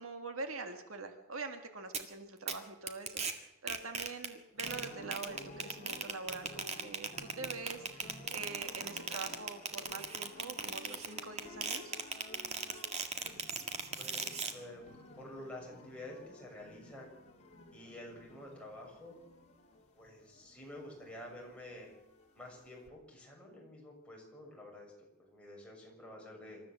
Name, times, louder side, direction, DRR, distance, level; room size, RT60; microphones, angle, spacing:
voice 1, 0.0-11.9, right 4 dB, 70° right, 6 dB, 2.0 m, -44 dB
sound 1, 1.9-2.0 2.5-2.6 2.9-3.3 3.7-4.3 4.6-14.5, right 5 dB, 30° right, 1.9 m, -38 dB
sound 2, 4.6-22.9, left 1 dB, 30° left, 3.6 m, -54 dB
voice 2, 14.0-14.9 15.2-17.1 17.7-19.2 20.0-21.9 22.3-24.9 25.2-26.6, left 1 dB, 5° left, -2 dB, 6.6 m, -49 dB
27.0 x 14.0 x 7.7 m, 0.91 s
head